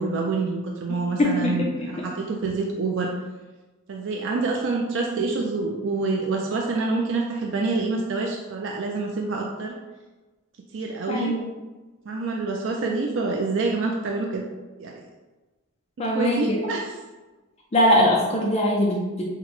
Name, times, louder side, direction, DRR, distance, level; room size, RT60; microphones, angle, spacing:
voice 1, 0.0-3.1 3.9-9.7 10.7-11.3 12.1-14.4 14.8-15.1 16.1-16.8, right 3 dB, 60° right, 0 dB, 0.4 m, -27 dB
voice 2, 1.2-2.0 11.1-11.4 16.0-16.6 17.7-19.2, equal, 30° left, -3 dB, 0.4 m, -22 dB
5.8 x 2.1 x 3.0 m, 1.2 s
head